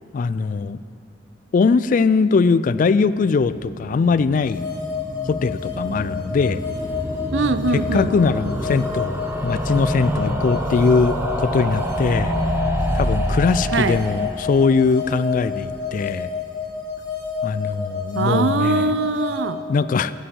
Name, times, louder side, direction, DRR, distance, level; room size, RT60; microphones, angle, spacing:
voice 1, 0.1-0.8 1.5-4.7 5.3-6.6 7.7-12.4 12.9-16.3 17.4-18.9 19.7-20.1, left 4 dB, 45° left, 15 dB, 0.3 m, -21 dB
sound 1, 3.4-16.4 16.7-16.8 17.0-17.1 17.3-17.4, equal, 15° right, 1.0 m, -27 dB
sound 2, 4.4-19.4, left 6 dB, 25° left, 2.8 m, -30 dB
voice 2, 7.3-8.1 13.7-14.0 18.1-19.6, right 3 dB, 90° right, 12 dB, 0.6 m, -21 dB
9.5 x 8.9 x 8.0 m, 2.7 s
head